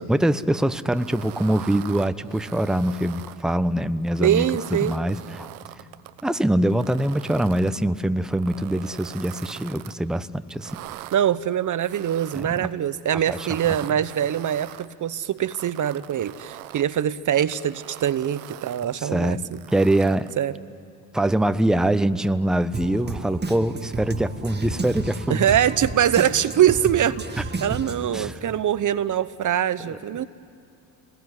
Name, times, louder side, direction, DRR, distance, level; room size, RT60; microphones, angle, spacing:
voice 1, 0.0-4.4 4.7-5.5 6.2-10.8 12.3-12.7 13.3-13.5 18.9-19.4 19.7-20.3 21.1-25.5 28.1-28.4 29.8-30.0, right 1 dB, ahead, 12 dB, 1.0 m, -23 dB
sound 1, 0.9-3.4 4.0-6.2 6.7-7.8 8.3-10.0 10.5-11.2 11.8-12.6 13.2-14.9 15.4-16.9 17.4-18.9 19.5-20.4, right 15 dB, 80° right, 1.0 m, -42 dB
voice 2, 4.2-4.9 11.1-19.4 20.4-20.6 25.3-30.3, right 10 dB, 45° right, 15 dB, 0.9 m, -23 dB
Drum kit, 22.7-28.2, right 3 dB, 25° right, 1.9 m, -32 dB
30.0 x 20.0 x 9.8 m, 2.5 s
hypercardioid pair, 55°, 43 cm